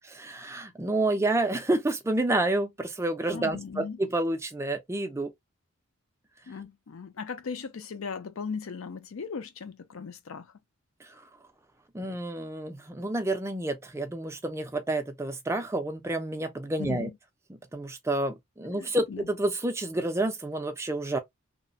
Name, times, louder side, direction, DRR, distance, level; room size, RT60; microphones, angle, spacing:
voice 1, 0.2-5.3 11.2-11.3 11.9-17.1 17.7-21.2, right 2 dB, 10° right, 0.4 m, -29 dB
voice 2, 3.3-4.0 6.5-10.5 16.8-17.2 18.6-19.3, left 5 dB, 70° left, 0.5 m, -38 dB
2.8 x 2.1 x 2.5 m
head